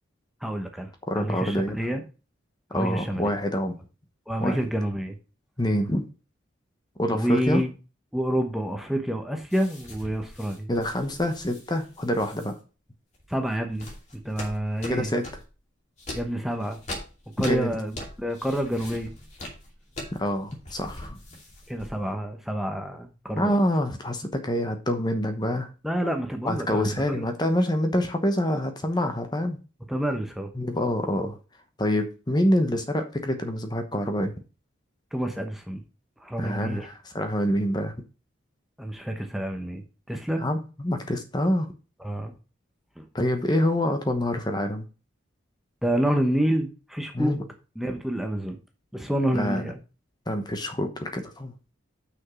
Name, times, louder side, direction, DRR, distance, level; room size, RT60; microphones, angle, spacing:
voice 1, 0.4-2.0 2.7-3.3 4.3-5.2 7.1-7.7 8.1-10.7 13.3-13.9 14.2-15.1 16.1-16.8 17.4-17.9 18.2-19.1 21.7-23.5 25.8-27.2 29.9-30.5 35.1-35.8 36.2-36.9 38.8-39.8 40.1-40.4 42.0-42.3 43.0-43.1 45.8-47.4 47.8-48.6 48.9-49.8, equal, ahead, 4 dB, 1.0 m, -28 dB
voice 2, 1.1-1.8 2.7-3.7 4.4-4.6 5.6-6.0 7.0-7.6 10.7-12.6 14.9-15.3 17.5-17.8 20.1-21.2 23.3-25.7 26.4-29.6 30.5-31.4 31.8-34.3 36.4-37.9 40.4-41.7 43.1-44.9 47.1-47.4 49.3-49.6 50.3-51.6, equal, 20° left, 6 dB, 1.0 m, -26 dB
sound 1, 9.5-12.5 13.1-15.5 16.0-22.1, left 1 dB, 35° left, 2.7 m, -41 dB
6.3 x 6.1 x 5.6 m, 0.33 s
head